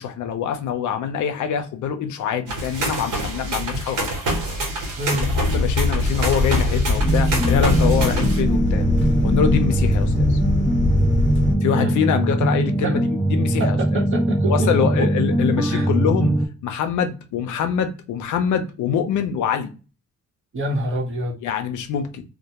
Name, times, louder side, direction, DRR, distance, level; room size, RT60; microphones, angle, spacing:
voice 1, 0.0-4.1 5.1-8.9 9.2-10.4 11.6-13.8 14.5-16.3 16.6-19.7 21.4-22.2, left 8 dB, 75° left, 7 dB, 0.5 m, -24 dB
sound 1, 2.5-8.4, right 1 dB, 85° right, 1.1 m, -27 dB
voice 2, 5.0-5.3 11.7-12.0 12.8-13.0 13.6-15.1 15.7-15.9 20.5-21.5, right 1 dB, 45° right, 0 dB, 0.9 m, -26 dB
sound 2, 5.2-11.5, left 2 dB, 40° left, 0.8 m, -22 dB
sound 3, 7.0-16.5, right 1 dB, 5° right, 0.3 m, -21 dB
2.2 x 2.1 x 2.8 m, 0.32 s
cardioid pair, 90°, 30 cm